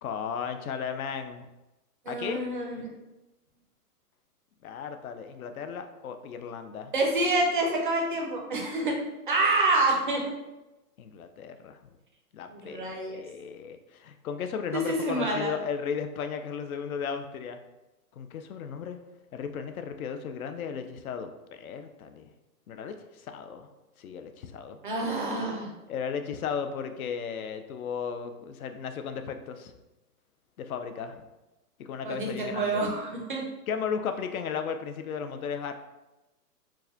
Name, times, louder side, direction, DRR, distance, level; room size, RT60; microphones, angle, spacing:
voice 1, 0.0-1.5 2.1-2.4 4.6-6.9 11.0-11.8 12.3-17.6 18.2-19.0 19.3-22.3 22.7-23.7 24.0-24.8 25.9-29.7 30.6-31.3 31.8-32.8 33.7-35.7, left 6 dB, 65° left, 8 dB, 0.5 m, -35 dB
voice 2, 2.1-2.9 6.9-9.0 9.3-10.2 12.5-13.2 14.7-15.5 24.8-25.7 32.0-33.4, right 2 dB, 35° right, 0 dB, 0.4 m, -27 dB
4.5 x 2.1 x 2.7 m, 1.0 s
hypercardioid pair, 160°, 47 cm